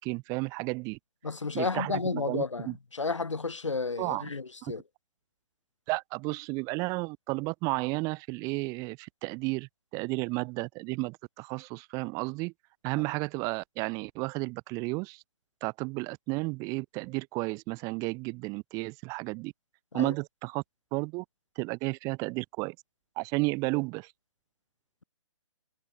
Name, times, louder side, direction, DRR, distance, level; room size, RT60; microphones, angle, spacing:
voice 1, 0.0-1.0 1.5-2.8 4.0-4.3 4.6-4.7 5.9-12.5 12.8-15.2 15.6-19.5 19.9-20.6 20.9-21.2 21.6-22.8 23.2-24.1, right 27 dB, 20° right, 3.9 m, -32 dB
voice 2, 1.2-2.7 2.9-4.8 19.9-20.1, left 4 dB, 65° left, 5.5 m, -32 dB
figure-of-eight pair, 135°, 16 cm